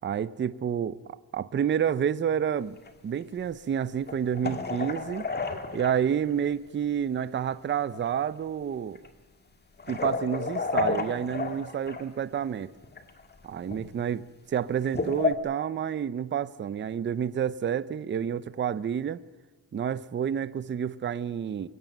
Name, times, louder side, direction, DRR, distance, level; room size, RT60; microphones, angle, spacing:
voice 1, 0.0-2.8 3.0-5.2 5.7-9.0 9.9-12.7 13.4-14.2 14.5-19.2 19.7-21.7, right 8 dB, 25° right, 15 dB, 0.6 m, -29 dB
sound 1, 2.9-3.0 4.1-6.2 7.5-7.6 7.9-8.1 9.0-9.1 9.8-12.0 12.8-13.2 13.6-13.9 14.8-15.3, left 4 dB, 25° left, 1.9 m, -31 dB
23.5 x 16.5 x 9.1 m, 1.2 s
cardioid pair, 170°, 42 cm